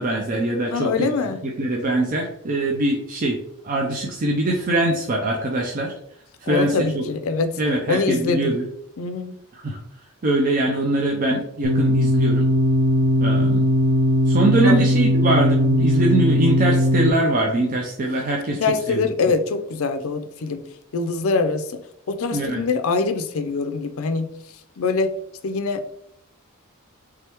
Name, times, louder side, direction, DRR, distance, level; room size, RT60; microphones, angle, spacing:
voice 1, 0.0-1.1 1.4-3.4 3.6-5.9 6.4-7.0 7.6-8.6 9.5-9.8 10.2-12.5 13.2-13.7 14.3-18.6 18.9-19.0 22.3-22.6, right 2 dB, 40° right, 0 dB, 0.4 m, -22 dB
voice 2, 0.7-1.4 6.5-7.6 7.9-8.5 9.0-9.3 14.6-14.8 18.6-20.6 20.9-21.8 22.1-24.3 24.8-25.1 25.4-25.8, left 4 dB, 65° left, 8 dB, 0.4 m, -23 dB
sound 1, 11.6-17.1, equal, 90° right, 0.5 m, -18 dB
3.5 x 3.3 x 2.9 m, 0.75 s
head